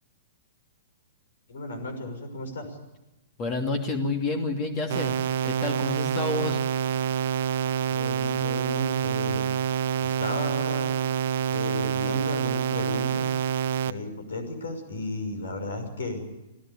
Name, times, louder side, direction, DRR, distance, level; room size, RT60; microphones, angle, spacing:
voice 1, 1.5-2.8 7.9-9.5 10.0-10.9 11.5-13.3 13.8-16.2, left 2 dB, 65° left, 8 dB, 6.1 m, -34 dB
voice 2, 3.4-5.2 5.4-6.6, left 3 dB, 30° left, 5 dB, 2.8 m, -29 dB
sound 1, 4.9-13.9, right 8 dB, 55° right, 0.9 m, -27 dB
27.0 x 17.0 x 8.7 m, 1.0 s
figure-of-eight pair, 115°, 0 cm